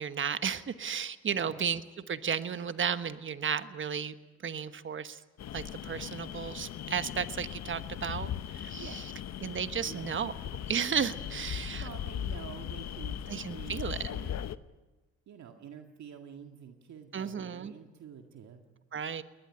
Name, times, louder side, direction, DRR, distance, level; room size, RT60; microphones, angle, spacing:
voice 1, 0.0-1.8 2.1-4.1 4.4-5.2 5.5-9.0 9.4-10.3 10.7-11.9 13.3-14.1 17.1-17.7 18.9-19.2, right 7 dB, 40° right, 11 dB, 1.3 m, -33 dB
voice 2, 1.3-1.7 8.7-9.1 9.9-10.1 11.8-13.2 13.5-14.5 15.3-18.6, right 8 dB, 65° right, 4 dB, 2.1 m, -48 dB
sound 1, 5.4-14.6, left 10 dB, 60° left, 0.9 m, -39 dB
20.5 x 20.0 x 9.9 m, 1.2 s
cardioid pair, 90°, 30 cm